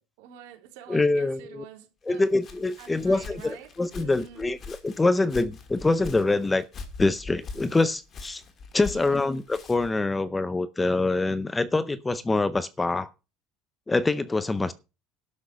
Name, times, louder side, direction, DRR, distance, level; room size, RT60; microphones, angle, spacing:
voice 1, 0.0-2.4 2.8-4.5 8.9-9.2, right 9 dB, 75° right, 3.6 m, -47 dB
voice 2, 0.9-1.6 2.1-6.6 7.0-8.4 8.7-13.1 13.9-14.7, left 3 dB, 10° left, 0.6 m, -25 dB
Walk footsteps, 2.1-10.0, left 4 dB, 25° left, 1.9 m, -43 dB
12.5 x 6.4 x 6.7 m
cardioid pair, 180°, 0 cm